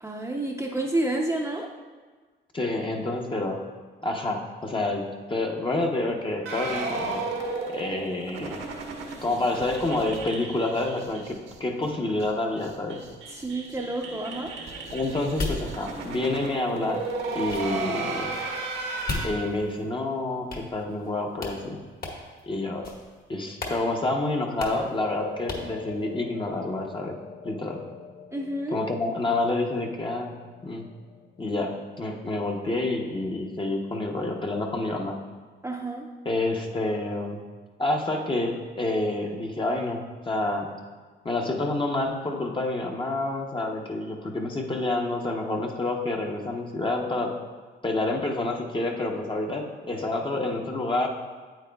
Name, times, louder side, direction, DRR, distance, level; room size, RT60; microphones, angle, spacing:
voice 1, 0.0-1.7 13.3-14.5 28.3-28.8 35.6-36.1, right 1 dB, 15° right, -1 dB, 0.6 m, -29 dB
voice 2, 2.5-3.6 4.0-7.2 7.7-8.7 9.2-13.0 14.9-17.1 17.3-18.3 19.2-21.8 22.5-22.9 23.3-27.2 27.4-27.8 28.7-30.3 30.6-30.8 31.4-35.2 36.2-37.4 37.8-40.0 40.3-40.7 41.2-47.3 47.8-51.1, left 2 dB, 25° left, 0 dB, 0.8 m, -28 dB
sound 1, 6.5-11.6 11.8-11.9 12.2-12.3 12.6-19.3, right 3 dB, 85° right, 1.3 m, -34 dB
Melon Stabs (Clean), 14.7-20.0 20.5-21.1 21.4-21.6 22.0-22.4 22.8-23.2 23.6-23.8 24.1-24.2 24.6-24.9 25.5-25.8, left 2 dB, 50° left, 1.6 m, -37 dB
sound 2, 25.1-33.6, left 5 dB, 65° left, 0.7 m, -45 dB
9.0 x 8.3 x 2.3 m, 1.4 s
cardioid pair, 90°, 20 cm